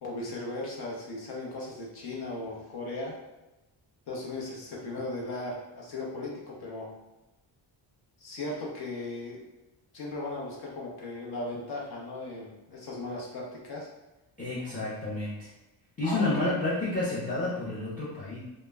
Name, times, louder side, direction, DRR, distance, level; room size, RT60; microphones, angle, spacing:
voice 1, 0.0-3.2 4.1-6.9 8.2-9.4 9.9-13.9 16.0-16.5, left 2 dB, 55° left, -3 dB, 0.7 m, -37 dB
voice 2, 14.4-15.5 16.0-18.4, left 2 dB, 20° left, -8 dB, 0.5 m, -30 dB
2.1 x 2.0 x 3.3 m, 1.0 s
cardioid pair, 145°, 46 cm